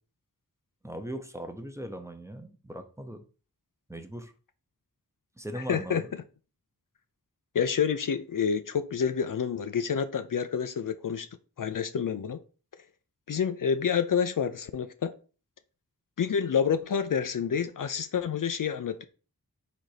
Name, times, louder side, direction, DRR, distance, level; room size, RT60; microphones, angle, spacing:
voice 1, 0.8-3.2 3.9-4.3 5.4-6.1, right 1 dB, 10° right, 0.7 m, -39 dB
voice 2, 5.5-6.0 7.5-11.3 11.6-12.4 13.3-15.1 16.2-19.0, left 7 dB, 60° left, 0.4 m, -28 dB
4.1 x 2.6 x 4.8 m
wide cardioid pair, 45°, 36 cm